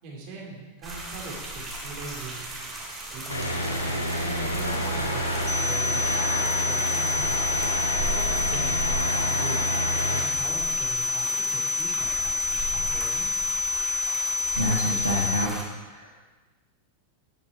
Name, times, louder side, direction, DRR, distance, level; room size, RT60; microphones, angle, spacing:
voice 1, 0.0-2.5 3.1-6.3 6.7-7.6 8.0-12.7 12.9-13.3, right 4 dB, 45° right, -2 dB, 3.3 m, -41 dB
sound 1, 0.8-15.6, right 2 dB, 15° right, 3.8 m, -36 dB
sound 2, 3.3-10.2, equal, 85° left, 1.3 m, -28 dB
sound 3, 5.5-15.5, left 4 dB, 10° left, 0.6 m, -28 dB
voice 2, 14.6-15.5 15.8-16.3, equal, 80° right, -4 dB, 1.8 m, -28 dB
9.7 x 9.6 x 4.5 m, 1.2 s
figure-of-eight pair, 90°, 0 cm